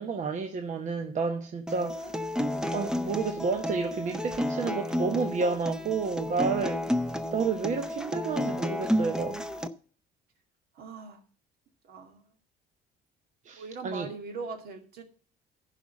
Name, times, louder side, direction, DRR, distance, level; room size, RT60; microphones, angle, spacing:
voice 1, 0.0-2.2 2.7-6.8 7.3-9.4 13.4-14.1, right 5 dB, 45° right, 1.0 m, -30 dB
Acoustic guitar, 1.7-9.7, left 1 dB, 5° right, 0.7 m, -31 dB
voice 2, 10.7-11.2 11.8-12.2 13.5-15.0, right 4 dB, 65° right, 2.3 m, -40 dB
11.0 x 5.2 x 7.3 m
cardioid pair, 110°, 17 cm